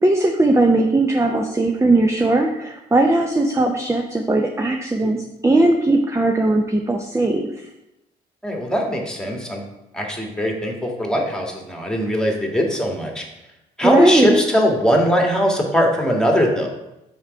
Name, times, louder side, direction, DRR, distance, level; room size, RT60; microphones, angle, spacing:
voice 1, 0.0-7.7 13.8-14.4, right 2 dB, 15° right, 3 dB, 0.7 m, -18 dB
voice 2, 8.4-9.6 9.9-13.2 13.8-16.7, equal, 5° left, 0 dB, 1.8 m, -20 dB
5.6 x 4.5 x 4.8 m, 0.90 s
hypercardioid pair, 45°, 21 cm